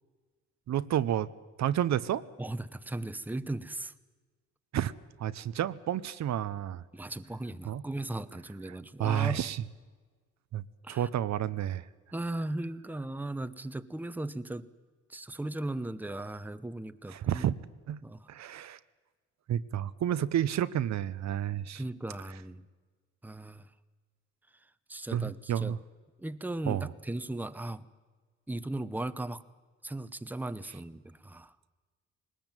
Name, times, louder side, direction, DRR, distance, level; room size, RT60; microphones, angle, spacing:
voice 1, 0.7-1.3 1.6-2.2 4.7-4.9 5.2-6.8 7.7-7.8 9.0-9.6 10.5-11.9 17.1-17.5 17.9-18.0 18.3-18.8 19.5-21.8 25.1-25.8 26.7-26.9, right 11 dB, 65° right, 15 dB, 0.8 m, -30 dB
voice 2, 2.4-3.9 6.9-9.4 10.8-11.1 12.1-14.7 15.1-17.5 18.0-18.3 21.7-22.7 23.2-23.7 24.5-25.8 26.2-27.8 28.5-29.4 29.8-31.6, right 2 dB, 5° right, 13 dB, 0.9 m, -37 dB
21.0 x 19.5 x 9.0 m, 1.4 s
cardioid pair, 90°, 30 cm